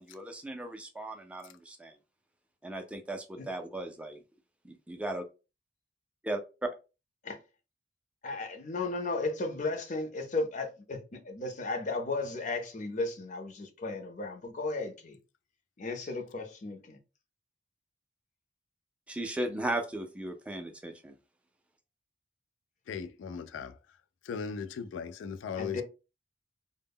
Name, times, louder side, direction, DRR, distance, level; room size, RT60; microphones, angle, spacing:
voice 1, 0.0-1.9 2.6-4.2 4.6-5.2 6.2-6.7 19.1-21.2, right 1 dB, 5° right, 0.3 m, -36 dB
voice 2, 8.2-15.2 15.8-17.0 25.6-25.8, left 3 dB, 40° left, 0.5 m, -35 dB
voice 3, 22.9-23.8 24.2-25.8, left 6 dB, 90° left, 0.3 m, -37 dB
2.1 x 2.0 x 3.4 m
head